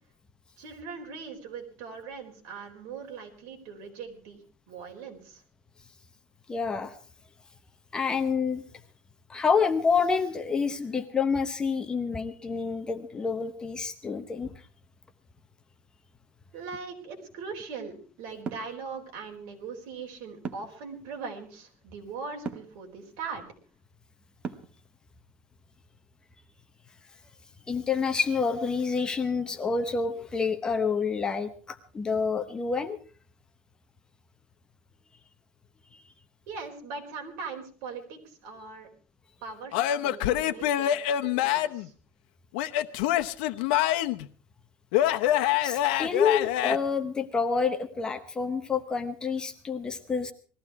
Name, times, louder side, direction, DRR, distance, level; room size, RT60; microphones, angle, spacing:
voice 1, 0.6-5.4 16.5-23.4 36.5-38.9 39.4-41.0 41.4-41.9, right 5 dB, 60° right, 2 dB, 4.3 m, -40 dB
voice 2, 6.5-6.9 7.9-8.6 9.3-14.5 27.7-33.0 45.6-50.3, left 5 dB, 15° left, 8 dB, 0.8 m, -28 dB
sound 1, 18.5-18.7 20.4-20.8 22.4-22.7 24.4-24.8, right 6 dB, 25° right, 1.1 m, -36 dB
Male speech man speaking / Yell / Laughter, 39.7-41.9 42.5-44.3 44.9-46.8, left 12 dB, 85° left, 0.9 m, -25 dB
20.0 x 14.5 x 4.7 m, 0.40 s
cardioid pair, 175°, 5 cm